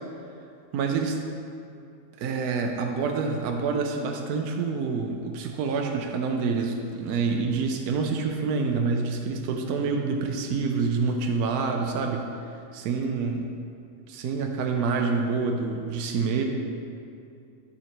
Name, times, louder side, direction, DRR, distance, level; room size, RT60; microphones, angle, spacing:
voice 1, 0.7-1.2 2.2-12.3 12.7-13.5 14.1-16.4, right 4 dB, 80° right, 3 dB, 1.1 m, -27 dB
11.0 x 4.1 x 4.4 m, 2.5 s
omnidirectional pair, 1.6 m